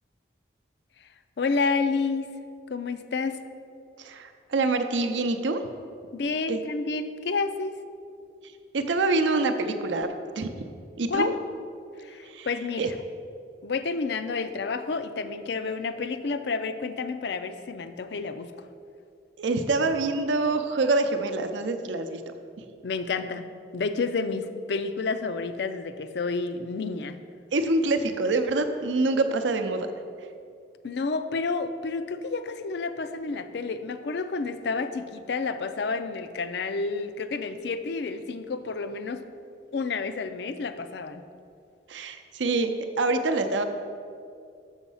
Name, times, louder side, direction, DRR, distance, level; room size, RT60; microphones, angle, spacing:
voice 1, 1.4-2.3 2.7-3.4 6.1-7.8 11.1-11.4 12.0-12.9 13.6-18.7 22.8-23.5 23.7-27.2 30.8-39.2 39.7-41.2, left 4 dB, 65° left, 10 dB, 0.4 m, -30 dB
voice 2, 4.0-5.6 6.5-6.6 8.7-10.5 11.0-11.3 12.2-12.5 12.8-12.9 19.4-22.6 27.5-29.9 41.9-43.6, right 3 dB, 80° right, 7 dB, 0.6 m, -26 dB
7.2 x 6.2 x 5.5 m, 2.4 s
head